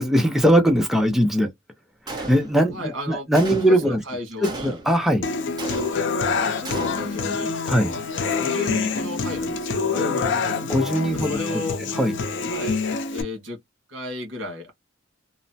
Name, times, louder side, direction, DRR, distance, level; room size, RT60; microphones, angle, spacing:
voice 1, 0.0-1.5 2.1-4.0 4.4-5.3 7.7-7.9 9.9-11.6 11.9-12.1, equal, ahead, 0.5 m, -21 dB
Gunshot gunfire, 2.1-2.8 3.3-3.9 4.4-5.0 5.6-6.2 6.6-7.2, right 2 dB, 20° right, 0.9 m, -35 dB
voice 2, 2.7-3.3 3.8-4.8 6.3-7.5 7.9-10.1 11.1-11.8 12.5-12.8 13.1-13.6 13.9-14.7, left 2 dB, 75° right, 1.4 m, -34 dB
Human voice / Acoustic guitar, 5.2-13.2, left 4 dB, 65° left, 0.5 m, -26 dB
3.0 x 2.0 x 2.6 m
head